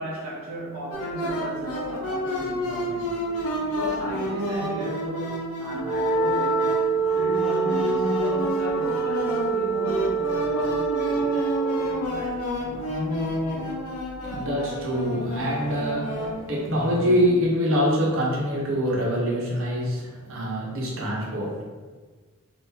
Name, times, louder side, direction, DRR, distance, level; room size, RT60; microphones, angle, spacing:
voice 1, 0.0-3.2 3.6-6.8 7.1-12.5, right 1 dB, 85° right, -5 dB, 0.5 m, -35 dB
sound 1, 0.9-17.2, left 1 dB, 80° left, 0.7 m, -30 dB
Wind instrument woodwind instrument, 5.8-12.1, right 5 dB, 10° right, 0.4 m, -25 dB
voice 2, 14.3-21.6, equal, 65° right, -3 dB, 0.9 m, -25 dB
2.8 x 2.5 x 3.7 m, 1.4 s
head